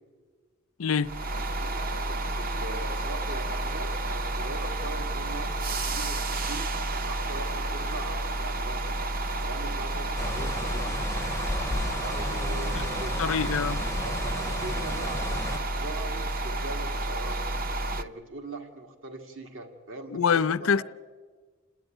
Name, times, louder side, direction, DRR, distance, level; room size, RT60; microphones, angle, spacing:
voice 1, 0.8-1.1 13.2-13.8 20.1-20.8, left 6 dB, 80° left, 0.6 m, -25 dB
sound 1, 1.0-18.0, right 2 dB, 45° right, 0.7 m, -30 dB
voice 2, 1.6-6.7 7.1-9.0 9.4-11.0 12.0-13.2 14.0-17.4 17.9-20.8, right 2 dB, 70° right, 2.0 m, -41 dB
sound 2, 10.2-15.6, left 2 dB, 15° left, 0.5 m, -34 dB
28.0 x 10.5 x 9.0 m
head